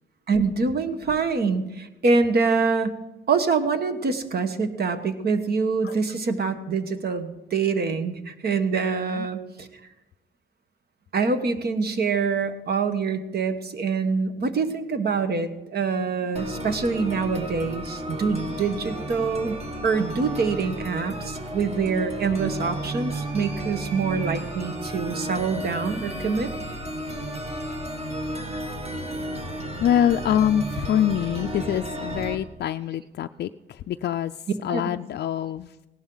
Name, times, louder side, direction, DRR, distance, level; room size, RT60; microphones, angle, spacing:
voice 1, 0.3-3.0 3.3-9.7 11.1-26.5 34.7-34.8, right 4 dB, 50° right, 9 dB, 1.3 m, -25 dB
voice 2, 8.9-9.3 29.8-35.8, left 10 dB, 55° left, 8 dB, 0.4 m, -25 dB
sound 1, 16.4-32.4, right 1 dB, 30° right, 1.6 m, -33 dB
17.5 x 11.5 x 3.9 m, 0.99 s
cardioid pair, 90°, 20 cm